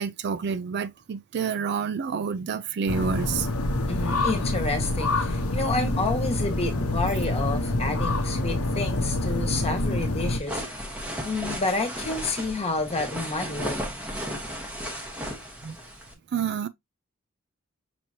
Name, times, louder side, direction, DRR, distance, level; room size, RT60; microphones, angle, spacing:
voice 1, 0.0-3.5 15.6-15.8 16.3-16.7, right 6 dB, 50° right, 0.4 m, -28 dB
sound 1, 2.9-10.4, left 2 dB, 80° left, 0.9 m, -26 dB
voice 2, 3.9-10.6 11.2-13.8, left 3 dB, 30° left, 1.4 m, -29 dB
sound 2, 10.3-16.1, equal, 5° right, 1.1 m, -35 dB
5.9 x 3.0 x 2.7 m
head